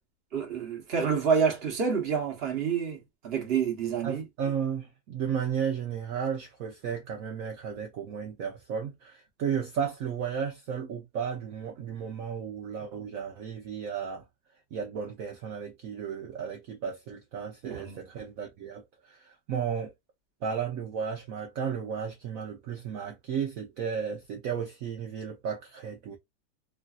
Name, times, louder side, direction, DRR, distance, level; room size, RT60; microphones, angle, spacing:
voice 1, 0.3-4.2 17.6-18.1, right 6 dB, 40° right, 1.1 m, -28 dB
voice 2, 4.0-14.2 14.7-19.9 20.4-26.2, right 7 dB, 65° right, 0.9 m, -34 dB
3.2 x 2.5 x 2.3 m
omnidirectional pair, 1.9 m